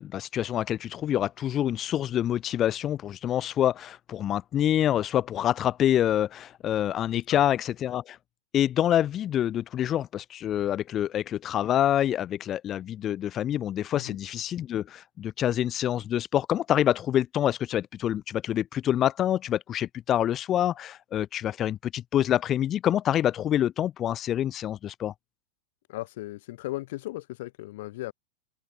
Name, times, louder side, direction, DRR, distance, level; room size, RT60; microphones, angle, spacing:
voice 1, 0.0-8.2 8.5-25.1, left 11 dB, 35° left, 0.6 m, -26 dB
voice 2, 25.9-28.1, left 18 dB, 65° left, 1.9 m, -36 dB
open air
hypercardioid pair, 100°, 0 cm